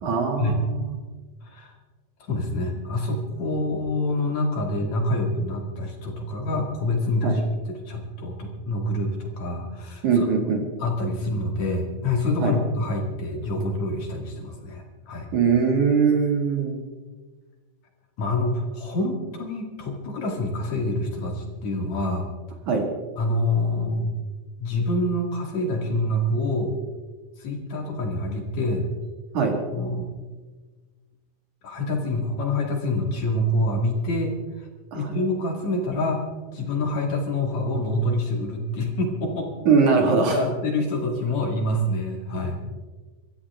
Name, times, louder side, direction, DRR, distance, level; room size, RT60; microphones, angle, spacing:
voice 1, 0.0-1.0 7.2-7.4 10.0-10.6 12.4-12.5 15.3-16.8 22.7-22.9 29.3-29.6 34.9-35.2 39.7-40.4, right 5 dB, 55° right, 2 dB, 3.3 m, -21 dB
voice 2, 1.4-1.7 2.3-10.3 10.8-15.3 18.2-22.3 23.2-24.2 24.6-26.7 27.4-28.8 29.7-30.2 31.6-34.7 34.9-36.2 36.5-39.5 40.3-42.6, left 1 dB, 55° left, 2 dB, 3.2 m, -26 dB
25.5 x 14.0 x 3.6 m, 1.3 s
omnidirectional pair, 4.3 m